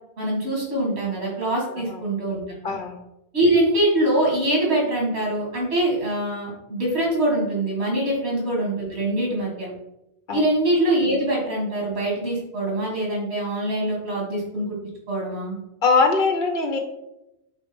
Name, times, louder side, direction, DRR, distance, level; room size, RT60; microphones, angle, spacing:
voice 1, 0.2-2.4 3.3-9.7 10.3-14.8 15.1-15.6, right 1 dB, 80° right, -3 dB, 2.0 m, -23 dB
voice 2, 2.6-3.0 10.3-10.4 15.8-16.8, left 4 dB, 60° left, 3 dB, 0.9 m, -21 dB
5.2 x 3.9 x 5.1 m, 0.90 s
omnidirectional pair, 1.1 m